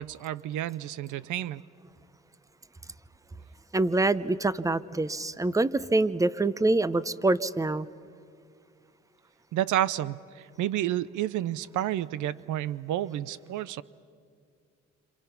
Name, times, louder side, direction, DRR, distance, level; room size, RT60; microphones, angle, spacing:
voice 1, 0.0-1.6 9.5-13.8, right 12 dB, 80° right, 19 dB, 0.7 m, -30 dB
voice 2, 3.7-7.9, right 2 dB, 10° right, 17 dB, 0.7 m, -25 dB
28.5 x 27.5 x 5.9 m, 2.2 s
cardioid pair, 90°, 30 cm